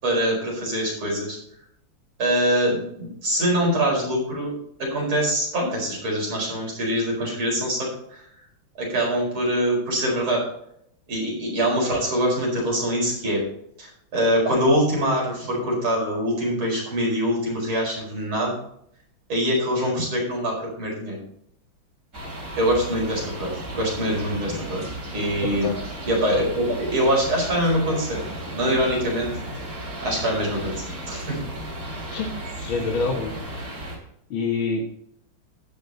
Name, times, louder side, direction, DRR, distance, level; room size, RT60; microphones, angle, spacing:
voice 1, 0.0-1.4 2.2-4.5 4.8-8.2 8.8-10.4 11.1-13.4 13.8-13.9 14.1-18.5 19.3-21.2 22.6-24.8 25.1-25.7 26.1-28.2 28.5-29.3 30.0-31.4, equal, 85° right, -2 dB, 5.7 m, -24 dB
sound 1, 22.1-34.0, right 1 dB, 45° right, 3.3 m, -34 dB
voice 2, 25.4-25.8 32.1-32.3 32.6-33.4 34.3-34.8, left 4 dB, 75° left, 0 dB, 2.3 m, -26 dB
12.0 x 8.5 x 4.1 m, 0.72 s
omnidirectional pair, 2.3 m